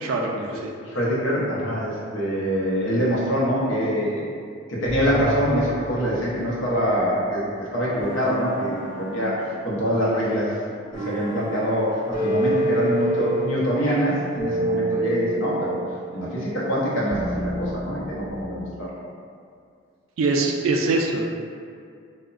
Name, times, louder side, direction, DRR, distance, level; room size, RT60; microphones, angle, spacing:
voice 1, 0.0-0.7 20.2-21.3, right 3 dB, 90° right, 1 dB, 0.3 m, -23 dB
voice 2, 0.9-4.2 4.7-7.5 7.7-9.4 9.6-10.5 10.9-15.8 16.1-18.9, equal, 75° left, -6 dB, 0.7 m, -24 dB
sound 1, 4.9-7.4 8.0-18.4, right 1 dB, 20° right, 0.8 m, -30 dB
2.9 x 2.1 x 2.4 m, 2.3 s
head